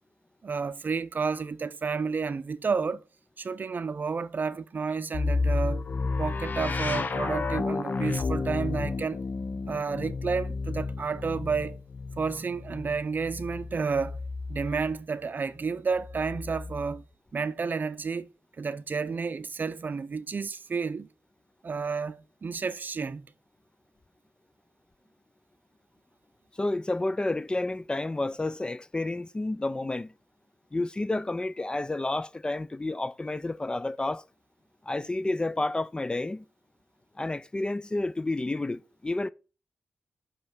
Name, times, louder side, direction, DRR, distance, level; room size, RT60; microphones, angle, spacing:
voice 1, 0.4-3.0 3.4-5.8 6.2-9.2 9.7-11.8 12.2-14.2 14.5-17.0 17.3-18.3 18.6-21.1 21.6-23.3, right 5 dB, 50° right, 0.5 m, -31 dB
sound 1, 5.1-15.0 16.0-17.0, left 3 dB, 50° left, 0.8 m, -32 dB
voice 2, 26.6-30.1 30.7-34.2 34.9-36.4 37.2-39.3, left 2 dB, 20° left, 0.4 m, -30 dB
5.6 x 5.5 x 6.0 m
cardioid pair, 75°, 4 cm